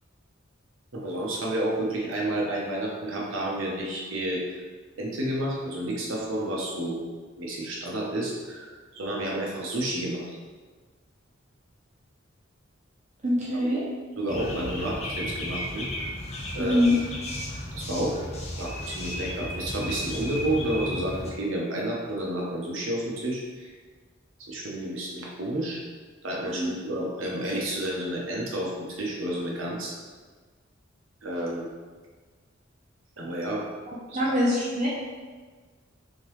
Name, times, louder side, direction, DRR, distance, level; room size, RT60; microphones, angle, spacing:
voice 1, 0.9-4.4 5.0-7.0 7.4-10.3 13.7-13.8 14.2-15.9 16.5-16.8 17.7-18.2 18.6-23.7 24.5-25.8 26.2-29.9 31.2-31.6 33.2-33.6 34.1-34.3, right 1 dB, 80° right, -3 dB, 0.9 m, -30 dB
voice 2, 13.2-13.8 16.6-16.9 26.6-26.7 34.1-34.9, left 1 dB, 40° right, -6 dB, 0.7 m, -23 dB
sound 1, 14.3-21.3, left 1 dB, 35° left, 0.6 m, -34 dB
3.7 x 3.6 x 3.1 m, 1.4 s
head